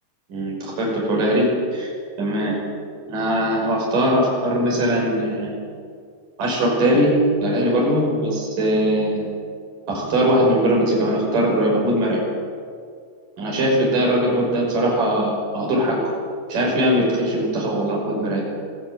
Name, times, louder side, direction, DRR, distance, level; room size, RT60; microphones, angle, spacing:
voice 1, 0.3-1.9 2.2-2.6 3.1-5.5 6.4-9.3 9.9-12.2 13.4-16.0 16.5-18.4, right 1 dB, 50° right, -2 dB, 7.4 m, -20 dB
25.5 x 17.5 x 9.3 m, 2.2 s
omnidirectional pair, 4.7 m